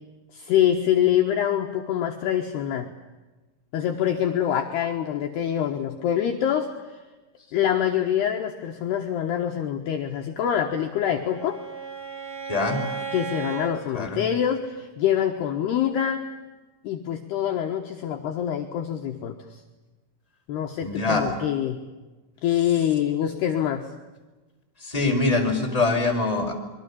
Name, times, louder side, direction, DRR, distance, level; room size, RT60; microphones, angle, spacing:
voice 1, 0.3-2.9 3.7-7.0 7.5-11.6 13.1-16.3 16.8-19.6 20.5-21.8 22.4-23.9, left 10 dB, 65° left, 3 dB, 3.0 m, -25 dB
Bowed string instrument, 10.6-13.8, right 6 dB, 45° right, 6.7 m, -35 dB
voice 2, 12.5-12.8 13.9-14.2 20.8-21.3 24.8-26.5, left 3 dB, 5° left, 1 dB, 4.6 m, -23 dB
26.5 x 23.0 x 8.7 m, 1.2 s
omnidirectional pair, 5.7 m